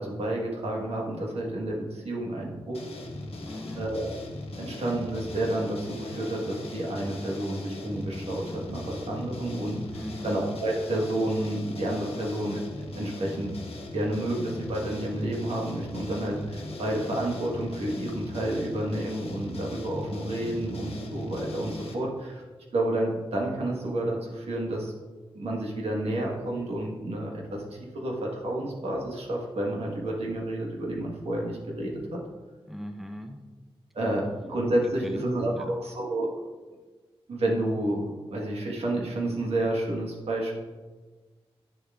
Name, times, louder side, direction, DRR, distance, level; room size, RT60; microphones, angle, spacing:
voice 1, 0.0-2.8 3.8-4.1 4.5-9.8 10.2-12.6 12.9-13.5 13.9-22.4 22.7-24.9 25.3-27.6 27.9-32.2 33.9-36.3 37.3-40.5, right 1 dB, 90° right, -2 dB, 1.4 m, -30 dB
sound 1, 2.7-21.9, left 2 dB, 75° left, 1.0 m, -39 dB
voice 2, 3.4-3.8 9.9-10.3 32.7-33.4 34.9-35.2 35.5-35.7, equal, ahead, 5 dB, 0.5 m, -39 dB
9.1 x 6.9 x 2.4 m, 1.3 s
wide cardioid pair, 110°, 10 cm